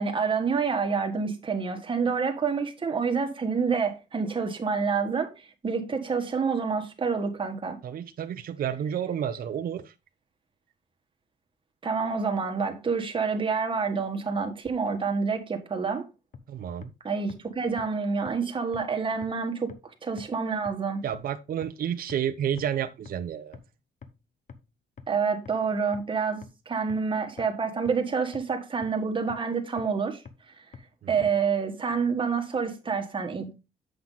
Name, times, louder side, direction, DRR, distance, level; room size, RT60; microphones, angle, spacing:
voice 1, 0.0-5.3 5.6-7.8 11.8-16.0 17.0-19.7 20.0-21.0 25.1-30.2 31.1-33.5, right 5 dB, 25° right, 1.6 m, -28 dB
voice 2, 7.8-9.9 16.5-16.9 21.0-23.6, right 9 dB, 50° right, 0.7 m, -30 dB
sound 1, 16.3-16.4 16.8-16.9 17.3-17.4 17.8-17.9 18.3-18.4 18.7-18.8 19.2-19.3 19.7-19.8 20.2-20.3 20.7-20.8 21.1-21.2 21.6-21.7 22.1-22.2 22.6-22.7 23.1-23.2 23.5-23.6 24.0-24.1 24.5-24.6 25.0-25.1 25.5-25.6 25.9-26.0 26.4-26.5 26.9-27.0 27.4-27.5 27.9-28.0 28.3-28.4 28.8-28.9 29.3-29.4 29.8-29.9 30.3-30.4 30.7-30.8 31.2-31.3, left 6 dB, 40° left, 1.1 m, -43 dB
7.8 x 5.8 x 3.9 m
cardioid pair, 130°, 19 cm